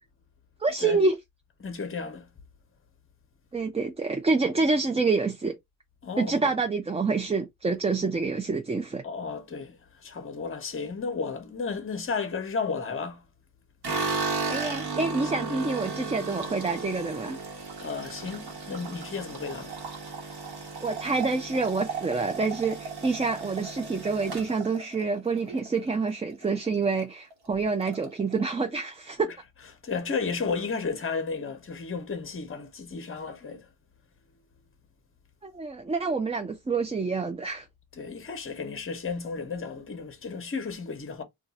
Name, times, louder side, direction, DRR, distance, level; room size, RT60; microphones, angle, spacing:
voice 1, 0.6-1.2 3.5-5.5 6.2-9.0 14.5-17.4 20.8-29.3 35.4-37.7, right 4 dB, 15° right, 0.4 m, -27 dB
voice 2, 1.6-2.3 6.0-6.5 9.0-13.2 15.2-15.3 17.8-19.8 29.8-33.7 38.0-41.2, left 5 dB, 35° left, 0.9 m, -33 dB
sound 1, 13.8-26.1 26.4-27.0 27.3-27.4 27.7-28.4, right 4 dB, 90° right, 1.2 m, -35 dB
2.6 x 2.4 x 4.0 m
wide cardioid pair, 115°, 38 cm